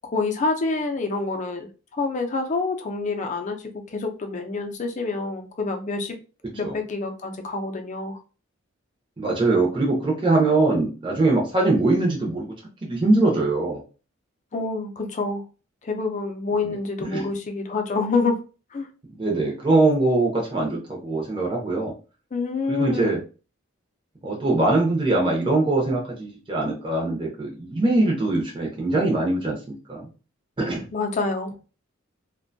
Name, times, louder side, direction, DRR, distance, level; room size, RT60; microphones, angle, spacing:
voice 1, 0.1-6.2 6.5-8.2 14.5-15.4 15.8-18.4 18.7-18.9 22.3-23.2 30.9-31.5, left 3 dB, 40° left, 0.5 m, -27 dB
voice 2, 9.2-12.5 12.8-13.8 17.0-17.2 19.1-21.9 22.7-23.2 24.2-30.1 30.6-30.8, right 2 dB, 25° right, 0.6 m, -22 dB
2.6 x 2.2 x 2.6 m
head